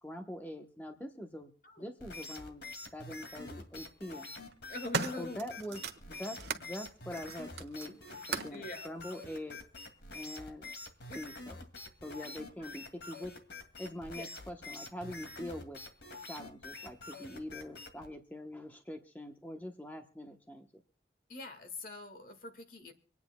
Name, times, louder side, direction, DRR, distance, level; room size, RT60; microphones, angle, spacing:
voice 1, 0.0-1.5 1.8-2.7 2.9-4.3 5.2-8.0 8.3-9.6 10.1-10.7 11.1-11.6 12.0-13.4 13.8-15.8 16.2-20.7, left 1 dB, 10° left, 4 dB, 0.9 m, -44 dB
sound 1, 2.0-18.1, left 3 dB, 85° left, 2.3 m, -47 dB
sound 2, 2.3-2.4 3.5-3.9 4.4-6.7 7.1-8.6 9.5-9.6, right 5 dB, 75° right, 1.2 m, -39 dB
voice 2, 4.7-5.4 8.5-8.9 11.1-11.2 14.1-14.3 21.3-22.9, left 2 dB, 50° left, 6 dB, 1.7 m, -43 dB
26.0 x 9.4 x 2.2 m, 0.42 s
head